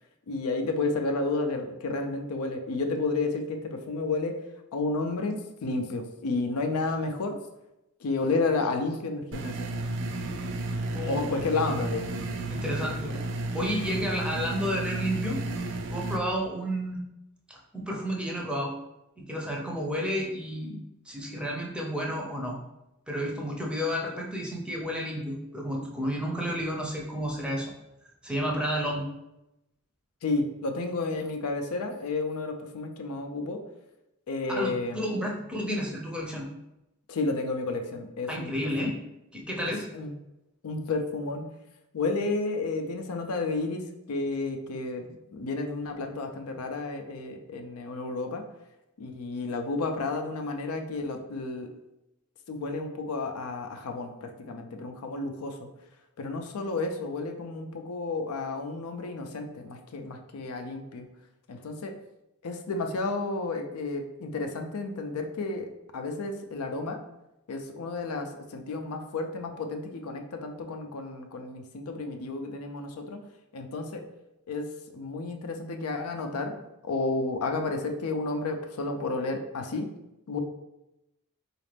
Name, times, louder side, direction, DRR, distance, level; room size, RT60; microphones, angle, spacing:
voice 1, 0.3-4.4 4.7-7.3 8.0-9.5 11.0-12.1 30.2-33.6 34.3-35.1 37.1-38.5 38.8-38.9 39.9-40.1 40.6-41.5 41.9-43.8 44.1-45.0 45.3-48.4 49.0-51.7 52.5-55.7 56.2-61.1 61.5-61.9 62.4-67.0 67.5-73.2 73.5-74.0 74.5-74.7 74.9-76.5 76.8-79.9 80.3-80.4, left 3 dB, 90° left, 4 dB, 0.5 m, -31 dB
sound 1, 9.3-16.2, right 2 dB, 55° right, 0.3 m, -33 dB
voice 2, 10.9-11.3 12.5-13.1 13.5-15.4 15.9-17.0 17.5-18.7 19.2-20.8 21.1-22.6 23.1-27.7 28.2-29.1 34.5-36.5 38.3-38.9 39.3-39.9, equal, 5° right, -1 dB, 0.5 m, -31 dB
4.0 x 2.4 x 3.3 m, 0.91 s
head